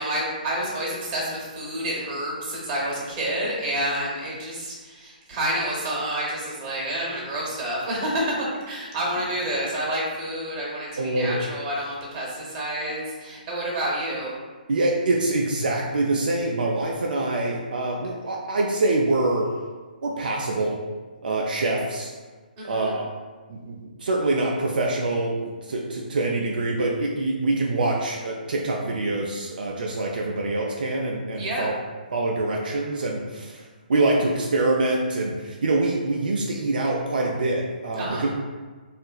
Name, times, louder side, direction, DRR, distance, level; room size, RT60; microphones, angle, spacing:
voice 1, 0.0-14.4 22.6-23.0 31.3-31.7 38.0-38.3, right 1 dB, 30° right, -4 dB, 0.8 m, -29 dB
voice 2, 11.0-11.4 14.7-19.6 20.0-20.8 21.2-22.1 22.6-23.1 23.5-31.8 32.1-33.6 33.9-38.3, right 2 dB, 70° right, -1 dB, 0.4 m, -25 dB
2.8 x 2.4 x 2.3 m, 1.4 s
hypercardioid pair, 140°, 5 cm